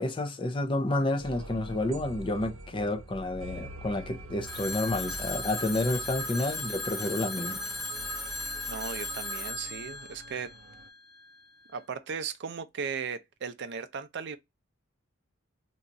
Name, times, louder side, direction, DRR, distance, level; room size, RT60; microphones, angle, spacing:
voice 1, 0.0-7.6, left 2 dB, 25° left, 0.4 m, -30 dB
sound 1, 1.2-10.9, right 1 dB, 80° right, 1.1 m, -46 dB
Telephone, 4.4-11.2, left 2 dB, ahead, 0.9 m, -37 dB
voice 2, 8.7-10.5 11.7-14.4, right 6 dB, 55° right, 0.4 m, -37 dB
2.6 x 2.3 x 3.9 m
head